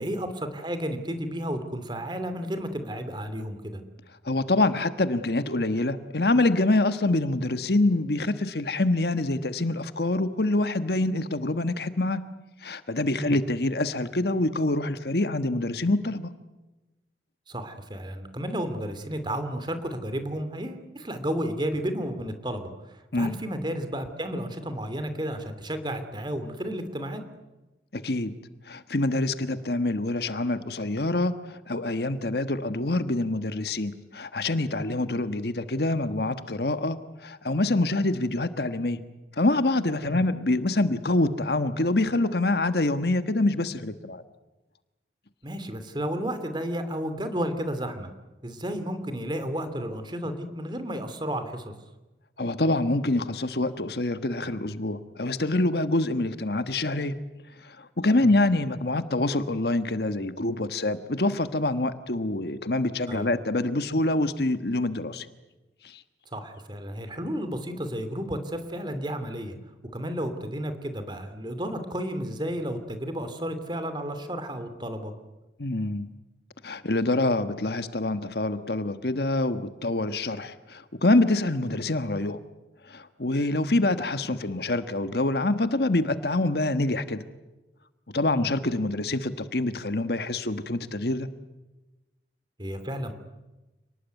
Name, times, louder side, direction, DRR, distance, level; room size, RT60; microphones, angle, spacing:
voice 1, 0.0-3.8 13.2-13.4 17.5-27.2 40.1-40.2 45.4-48.1 48.4-51.7 58.2-58.3 63.1-63.3 66.3-69.6 69.9-75.1 88.3-88.4 92.6-93.1, equal, 25° right, 9 dB, 2.8 m, -32 dB
voice 2, 4.2-12.2 12.6-16.3 23.1-23.4 27.9-28.3 28.7-39.0 39.4-44.2 52.4-57.1 57.6-65.3 65.8-66.0 75.6-76.1 76.6-82.4 82.9-87.2 88.1-91.3, left 2 dB, 60° left, 11 dB, 1.4 m, -26 dB
29.5 x 19.5 x 9.4 m, 1.1 s
head